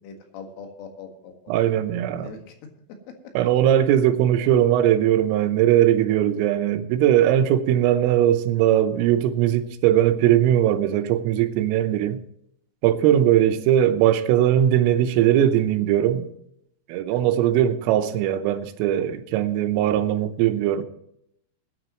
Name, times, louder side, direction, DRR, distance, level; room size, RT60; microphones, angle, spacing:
voice 1, 0.0-1.5 2.1-2.6 3.1-3.2 13.0-13.3 17.1-17.3, left 4 dB, 75° left, 4.2 m, -41 dB
voice 2, 1.5-2.3 3.4-12.2 12.8-16.3 16.9-20.8, right 11 dB, 85° right, 3.5 m, -20 dB
21.0 x 10.0 x 3.0 m
omnidirectional pair, 5.8 m